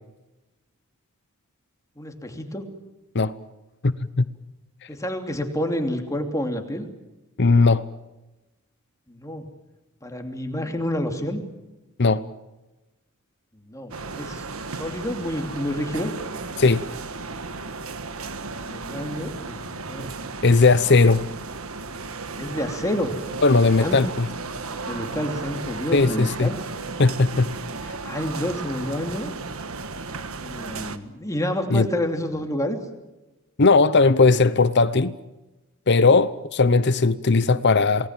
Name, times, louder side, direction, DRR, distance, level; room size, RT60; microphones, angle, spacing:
voice 1, 2.0-2.7 4.9-6.8 9.1-9.5 10.0-11.4 13.6-14.5 14.7-16.1 18.5-20.1 22.4-23.1 23.8-24.0 24.9-26.6 28.0-29.3 30.4-32.8, left 1 dB, 15° left, 2.9 m, -29 dB
voice 2, 3.8-4.2 7.4-7.8 12.0-12.2 16.6-16.8 20.4-21.2 23.4-24.3 25.9-26.5 27.0-27.5 31.7-31.9 33.6-35.2 35.9-38.1, left 3 dB, 55° left, 0.8 m, -18 dB
sound 1, 13.9-31.0, right 3 dB, 70° right, 1.5 m, -34 dB
28.0 x 19.5 x 7.5 m
head